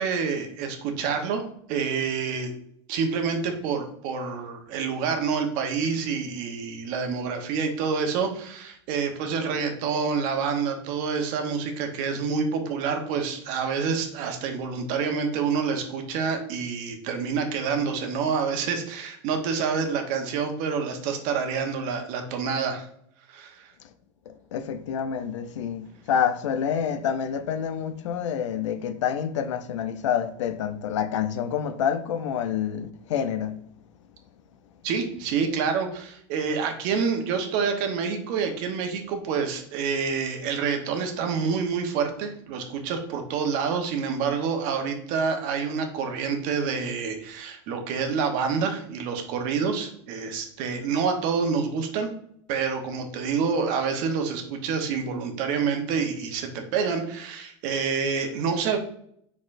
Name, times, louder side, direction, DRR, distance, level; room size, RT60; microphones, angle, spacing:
voice 1, 0.0-1.4 1.7-2.5 2.9-22.9 23.3-23.7 34.8-52.1 52.5-58.8, right 5 dB, 60° right, 1.0 m, -27 dB
voice 2, 24.3-33.6, left 8 dB, 85° left, 0.5 m, -28 dB
4.5 x 4.1 x 2.5 m
hypercardioid pair, 100°, 15 cm